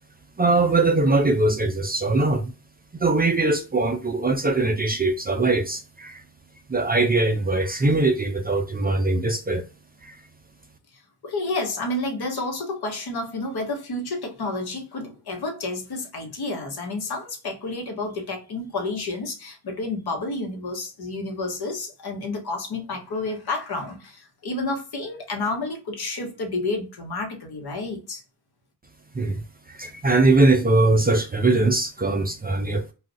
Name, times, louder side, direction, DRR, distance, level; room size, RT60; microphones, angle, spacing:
voice 1, 0.4-2.5 2.9-6.2 6.7-9.6 10.0-10.1 29.1-29.4 29.7-32.9, right 2 dB, 25° right, 0.4 m, -21 dB
voice 2, 11.2-28.2, left 2 dB, 65° left, 1.0 m, -30 dB
2.4 x 2.1 x 3.6 m
cardioid pair, 60°, 42 cm